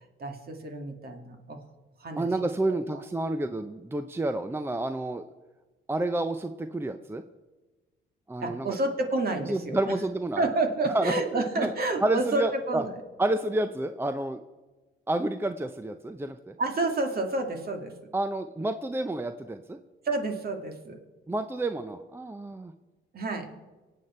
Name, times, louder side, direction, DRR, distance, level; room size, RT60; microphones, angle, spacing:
voice 1, 0.2-1.6 2.0-2.3 2.7-3.0 8.4-9.9 10.4-12.9 16.6-17.9 20.0-21.0 23.1-23.5, right 2 dB, 50° right, 4 dB, 2.3 m, -29 dB
voice 2, 2.2-5.2 5.9-7.2 8.3-8.8 9.4-10.4 10.9-11.7 12.0-12.8 13.2-14.4 15.1-16.5 18.1-19.8 21.3-22.7, right 2 dB, 10° right, 9 dB, 0.6 m, -29 dB
24.5 x 8.5 x 4.4 m, 1.2 s
cardioid pair, 90°, 20 cm